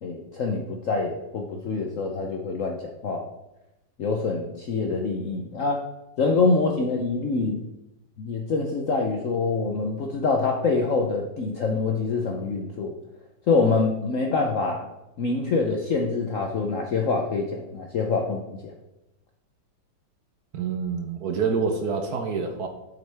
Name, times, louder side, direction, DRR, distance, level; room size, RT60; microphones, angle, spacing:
voice 1, 0.0-2.8 3.0-3.2 4.0-5.8 6.2-7.6 8.2-12.9 13.5-14.9 15.2-18.7, left 4 dB, 65° left, 2 dB, 0.8 m, -25 dB
voice 2, 20.5-22.7, right 5 dB, 60° right, 5 dB, 1.1 m, -27 dB
8.1 x 7.3 x 3.4 m, 0.95 s
omnidirectional pair, 2.2 m